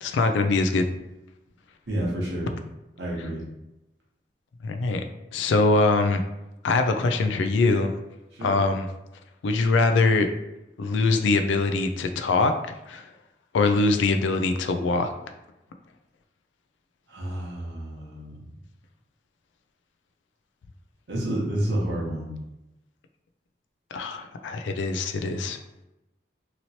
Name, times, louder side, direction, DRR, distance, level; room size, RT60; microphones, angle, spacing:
voice 1, 0.0-0.9 4.6-5.0 5.3-6.2 6.6-7.9 8.4-8.9 9.4-10.3 10.8-12.5 12.9-13.1 13.5-15.1 23.9-25.6, left 3 dB, 85° left, 7 dB, 0.3 m, -23 dB
voice 2, 1.9-2.5 3.0-3.4 8.3-8.5 17.1-18.5 21.1-22.3, right 1 dB, 75° right, -4 dB, 0.9 m, -29 dB
2.9 x 2.8 x 2.7 m, 0.94 s
head